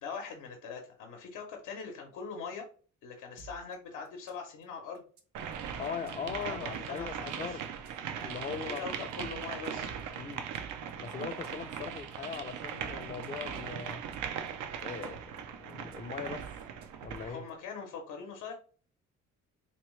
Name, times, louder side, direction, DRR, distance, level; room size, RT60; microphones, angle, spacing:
voice 1, 0.0-2.6 3.0-5.0 6.2-7.5 8.5-9.9 17.3-18.6, left 5 dB, 90° left, 0.9 m, -42 dB
sound 1, 3.4-3.7 4.0-4.6 4.9-5.2 5.5-7.3 7.6-8.2 8.5-8.8 9.1-10.9 11.2-11.8 12.1-12.4 12.7-14.5 14.8-15.4 15.7-15.9 16.3-17.5, right 6 dB, 65° right, 0.9 m, -51 dB
sound 2, 5.3-17.4, right 8 dB, 90° right, 0.5 m, -39 dB
voice 2, 5.8-7.6 8.2-8.9 10.1-10.5 11.0-14.0 14.8-16.4 17.0-17.4, left 6 dB, 25° left, 0.4 m, -40 dB
3.5 x 2.9 x 3.1 m
cardioid pair, 90°, 30 cm